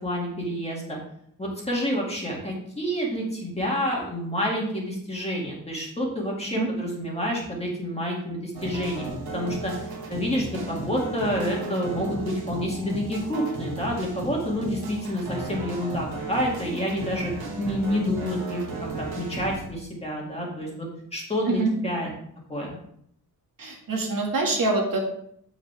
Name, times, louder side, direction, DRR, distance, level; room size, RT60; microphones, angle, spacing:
voice 1, 0.0-1.0 1.4-17.3 17.6-18.6 19.0-22.1 22.5-22.8, equal, 15° left, -3 dB, 2.1 m, -28 dB
sound 1, 8.5-19.7, right 2 dB, 80° right, 1.8 m, -35 dB
voice 2, 23.6-25.0, right 3 dB, 60° right, 0 dB, 1.9 m, -25 dB
7.9 x 7.0 x 3.4 m, 0.70 s
wide cardioid pair, 150°, 37 cm